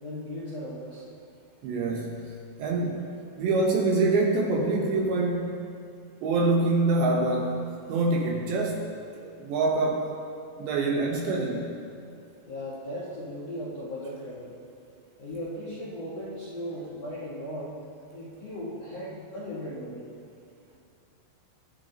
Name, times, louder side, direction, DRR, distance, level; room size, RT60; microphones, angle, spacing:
voice 1, 0.0-1.0 12.4-14.5 15.2-17.7 18.1-20.1, equal, 60° left, -9 dB, 1.6 m, -37 dB
voice 2, 1.6-2.3 2.6-3.1 3.4-5.6 6.2-7.6 7.9-8.9 9.2-10.1 10.6-11.7, right 2 dB, 75° right, 0 dB, 2.9 m, -25 dB
24.5 x 10.0 x 3.0 m, 2.5 s
omnidirectional pair, 6.0 m